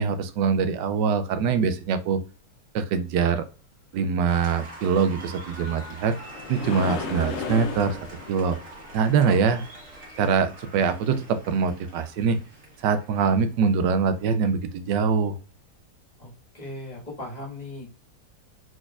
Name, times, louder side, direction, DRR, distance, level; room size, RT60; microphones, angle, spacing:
voice 1, 0.0-2.2 2.7-3.4 3.9-6.2 6.5-8.0 8.3-8.6 8.9-9.6 10.2-12.4 12.8-15.4, right 6 dB, 70° right, 10 dB, 1.2 m, -23 dB
Applause, 4.3-14.3, right 1 dB, 40° right, 1.7 m, -45 dB
sound 1, 5.3-10.5 14.4-14.5 15.1-15.2, left 5 dB, 70° left, 0.7 m, -36 dB
voice 2, 9.3-9.6 16.2-17.9, left 1 dB, 20° left, -3 dB, 1.6 m, -39 dB
4.6 x 4.3 x 2.4 m, 0.35 s
omnidirectional pair, 2.1 m